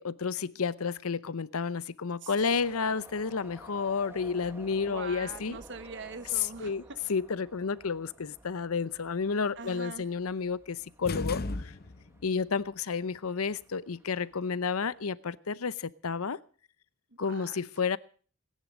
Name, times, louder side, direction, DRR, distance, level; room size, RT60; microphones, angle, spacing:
voice 1, 0.0-5.6 6.6-11.7 12.2-16.4 17.2-18.0, left 5 dB, 90° left, 0.7 m, -31 dB
sound 1, 2.3-15.1, right 1 dB, 10° right, 1.6 m, -54 dB
voice 2, 4.8-6.7 9.6-10.1 17.2-17.6, right 5 dB, 60° right, 1.2 m, -43 dB
sound 2, 11.0-12.3, left 2 dB, 45° left, 0.9 m, -35 dB
19.0 x 10.5 x 6.2 m
head